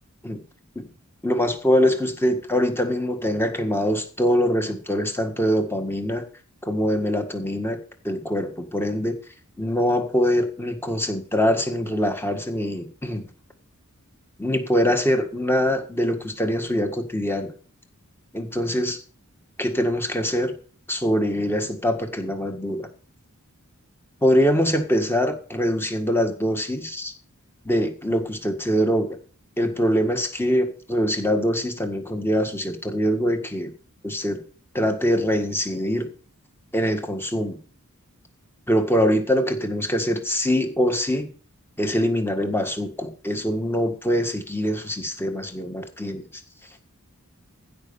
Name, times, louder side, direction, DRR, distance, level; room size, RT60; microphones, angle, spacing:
voice 1, 1.2-6.2 6.6-7.8 8.0-9.2 9.6-13.3 14.4-17.5 18.3-19.0 19.6-20.6 20.9-22.9 24.2-27.1 27.7-29.2 29.6-33.7 34.0-34.4 34.7-36.1 36.7-37.6 38.7-41.3 41.8-46.4, equal, 10° left, 6 dB, 1.7 m, -23 dB
15.0 x 5.4 x 7.1 m, 0.41 s
head